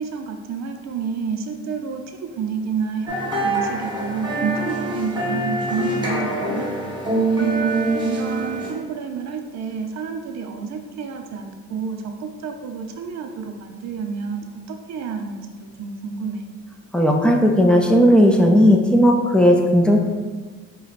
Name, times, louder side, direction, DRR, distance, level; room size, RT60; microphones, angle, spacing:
voice 1, 0.0-6.7 7.4-16.4, right 6 dB, 65° right, 4 dB, 0.6 m, -29 dB
sound 1, 3.1-8.7, right 2 dB, 15° right, 1.2 m, -24 dB
voice 2, 16.9-20.0, equal, 5° left, 0 dB, 0.6 m, -15 dB
5.0 x 2.3 x 4.0 m, 1.4 s
cardioid pair, 90°, 30 cm